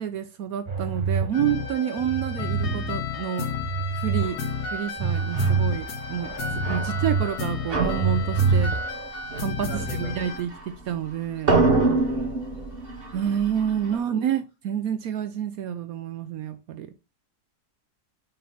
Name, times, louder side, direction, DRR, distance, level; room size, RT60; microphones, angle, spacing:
voice 1, 0.0-3.5 3.9-4.4 4.7-8.7 9.4-11.6 13.1-16.9, right 9 dB, 70° right, 1.1 m, -29 dB
sound 1, 0.7-2.7 3.2-4.3 4.6-7.3 7.6-9.1, right 5 dB, 20° right, 0.9 m, -26 dB
sound 2, 1.3-10.4, left 5 dB, 90° left, 1.8 m, -32 dB
sound 3, 5.2-5.6 6.2-7.4 7.7-11.1 11.4-14.0, right 3 dB, 40° right, 1.7 m, -27 dB
voice 2, 6.7-7.1 9.7-10.3 12.0-12.9 14.1-14.3, left 1 dB, 25° left, 3.0 m, -43 dB
5.3 x 4.4 x 5.5 m
omnidirectional pair, 1.7 m